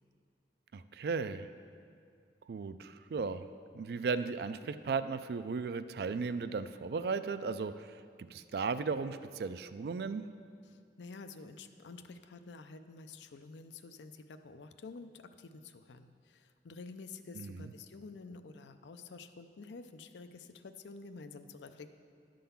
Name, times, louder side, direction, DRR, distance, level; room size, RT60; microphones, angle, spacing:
voice 1, 0.7-1.5 2.5-3.5 3.7-7.9 8.3-10.2 17.4-17.7, right 4 dB, 60° right, 12 dB, 0.3 m, -36 dB
voice 2, 10.6-22.0, left 4 dB, 85° left, 9 dB, 0.5 m, -49 dB
11.0 x 3.8 x 6.9 m, 2.2 s
head